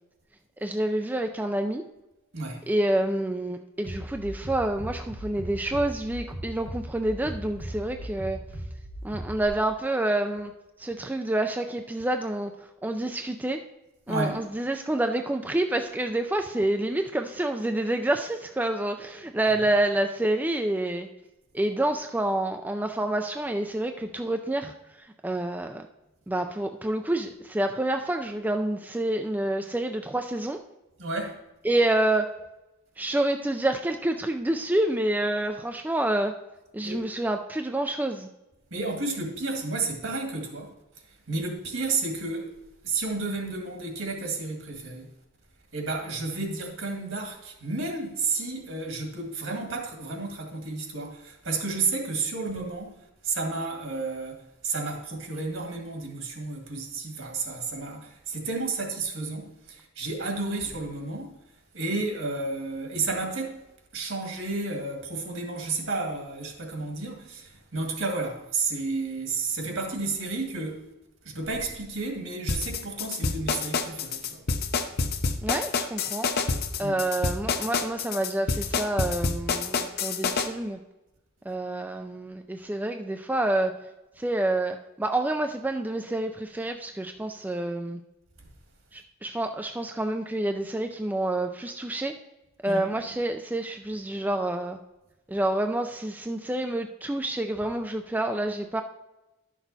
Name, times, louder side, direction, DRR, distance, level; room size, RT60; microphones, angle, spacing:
voice 1, 0.6-1.8 2.7-8.4 9.0-10.5 10.8-12.5 12.8-13.6 14.1-21.1 21.5-24.7 25.2-25.9 26.3-30.6 31.6-32.3 33.0-36.3 36.7-38.3 75.4-76.3 76.8-80.8 81.5-83.7 84.2-88.0 88.9-92.1 92.6-94.8 95.3-98.8, right 1 dB, 10° right, 0.3 m, -28 dB
Bass drum, 3.8-9.5, right 1 dB, 90° right, 2.1 m, -38 dB
voice 2, 14.1-14.4 31.0-31.4 36.8-37.1 38.7-40.7 41.3-42.5 42.8-45.1 45.7-52.9 53.2-61.4 61.7-63.6 63.9-70.9 71.2-74.4 76.8-77.0 92.7-93.0, right 3 dB, 70° right, 2.0 m, -31 dB
sound 1, 72.5-80.5, left 4 dB, 50° left, 0.7 m, -27 dB
11.5 x 6.1 x 4.0 m
head